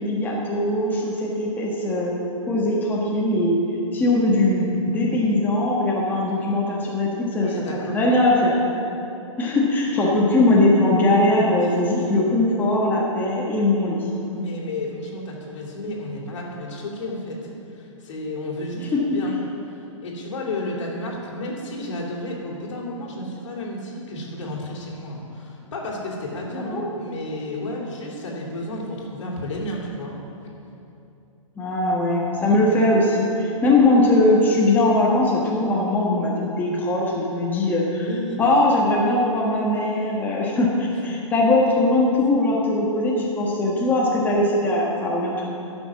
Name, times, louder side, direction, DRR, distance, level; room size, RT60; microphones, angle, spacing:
voice 1, 0.0-2.1 2.5-3.6 3.9-7.5 7.9-8.6 9.4-14.0 26.5-26.8 31.6-38.1 38.4-45.5, left 2 dB, 10° left, -5 dB, 1.4 m, -20 dB
voice 2, 7.4-8.0 11.3-11.5 14.3-17.4 17.7-19.4 19.6-30.1 37.9-38.4 41.2-41.3 42.3-42.5, left 1 dB, 60° left, -2 dB, 2.6 m, -32 dB
12.5 x 6.1 x 6.1 m, 2.8 s
figure-of-eight pair, 120°, 17 cm